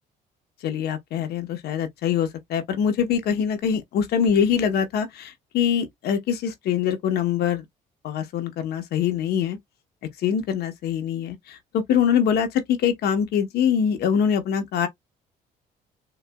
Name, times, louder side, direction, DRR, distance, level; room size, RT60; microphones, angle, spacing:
voice 1, 0.6-7.6 8.0-9.6 10.2-14.9, left 8 dB, 70° left, 1.0 m, -24 dB
3.9 x 2.4 x 2.2 m
cardioid pair, 110°, 17 cm